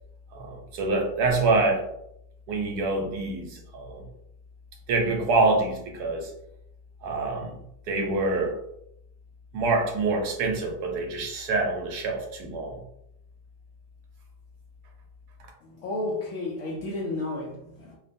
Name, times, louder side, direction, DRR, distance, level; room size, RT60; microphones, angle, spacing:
voice 1, 0.3-1.9 2.5-4.0 4.9-6.3 7.0-7.6 7.9-8.6 9.5-12.8, right 3 dB, 75° right, 2 dB, 1.1 m, -26 dB
voice 2, 15.6-18.0, left 2 dB, 70° left, -2 dB, 0.8 m, -32 dB
2.9 x 2.2 x 2.5 m, 0.77 s
omnidirectional pair, 1.8 m